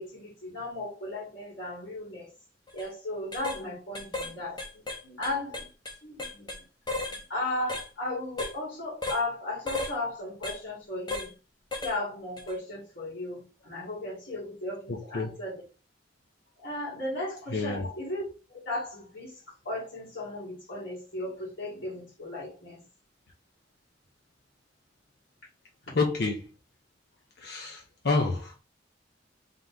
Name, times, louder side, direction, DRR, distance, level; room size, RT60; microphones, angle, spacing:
voice 1, 0.0-2.3 2.7-5.7 6.0-6.5 6.9-11.3 11.8-15.6 16.6-18.3 18.6-19.4 19.6-22.8, left 2 dB, 85° left, 2.3 m, -36 dB
sound 1, 2.7-2.9 3.3-3.6 4.0-4.3 4.6-6.6 6.9-7.2 7.7-7.9 8.4-8.6 9.0-9.2 9.7-9.9 10.4-10.6 11.1-11.3 11.7-12.0 12.4-12.5, left 2 dB, 25° left, 0.8 m, -34 dB
voice 2, 14.9-15.4 17.5-17.9 25.9-26.5 27.4-28.6, left 3 dB, 60° left, 0.7 m, -29 dB
3.7 x 3.0 x 3.6 m
head